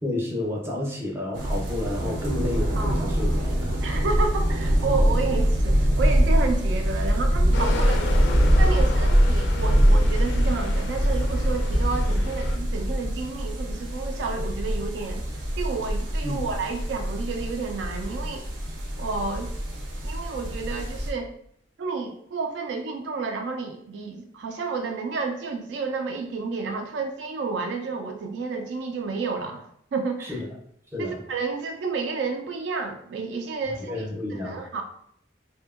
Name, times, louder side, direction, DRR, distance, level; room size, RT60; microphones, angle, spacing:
voice 1, 0.0-3.7 16.2-16.4 30.2-30.4 30.9-31.2 33.8-34.6, left 1 dB, 15° right, -2 dB, 0.6 m, -30 dB
sound 1, 1.3-21.1, equal, 85° right, 0.7 m, -23 dB
voice 2, 2.8-3.1 3.8-8.1 8.6-15.2 15.6-18.5 19.0-19.5 20.0-21.3 21.8-30.4 31.0-34.8, right 4 dB, 65° right, 4 dB, 0.3 m, -31 dB
sound 2, 7.5-12.6, left 2 dB, 70° left, 0.4 m, -31 dB
2.7 x 2.6 x 2.4 m, 0.69 s
head